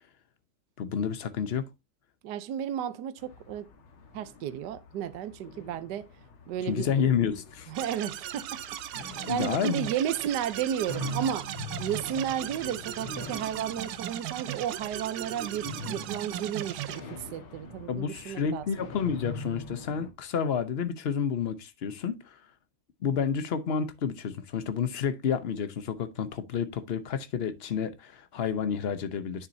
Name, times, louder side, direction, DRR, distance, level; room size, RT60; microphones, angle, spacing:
voice 1, 0.8-1.7 6.6-7.7 9.3-9.9 17.9-22.4 23.0-29.5, left 7 dB, 70° left, 0.5 m, -30 dB
voice 2, 2.2-3.7 4.1-6.1 6.5-7.1 7.7-8.6 9.0-18.7, right 9 dB, 65° right, 1.2 m, -33 dB
sound 1, 3.2-20.1, left 1 dB, 85° left, 2.3 m, -43 dB
sound 2, 7.7-17.0, right 12 dB, 85° right, 1.5 m, -38 dB
9.8 x 7.3 x 2.7 m
omnidirectional pair, 2.2 m